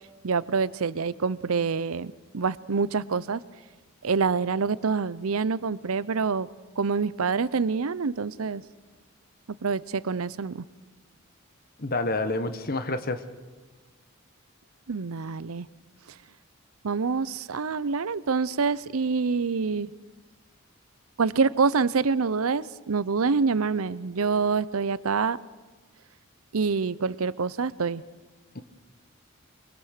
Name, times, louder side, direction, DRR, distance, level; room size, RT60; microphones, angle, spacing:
voice 1, 0.2-3.4 4.0-6.5 6.8-8.6 9.6-10.7 14.9-15.7 16.8-19.9 21.2-25.4 26.5-28.0, right 5 dB, 85° right, 18 dB, 0.6 m, -26 dB
voice 2, 11.8-13.2 28.5-28.6, left 2 dB, 45° left, 10 dB, 1.3 m, -28 dB
23.5 x 23.5 x 6.6 m, 1.3 s
head